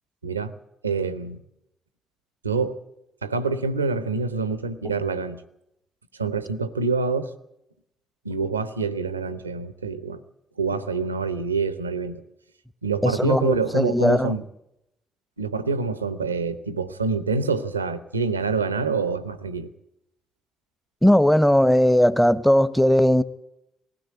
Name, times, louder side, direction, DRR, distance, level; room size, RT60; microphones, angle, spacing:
voice 1, 0.2-0.5 0.8-1.4 2.4-2.8 3.2-5.4 6.2-7.3 8.2-10.2 10.6-12.2 12.8-14.4 15.4-19.7, right 4 dB, 90° right, 0.7 m, -26 dB
voice 2, 13.0-14.3 21.0-23.2, equal, 5° left, 1.0 m, -18 dB
20.0 x 16.0 x 8.5 m
figure-of-eight pair, 45°, 0 cm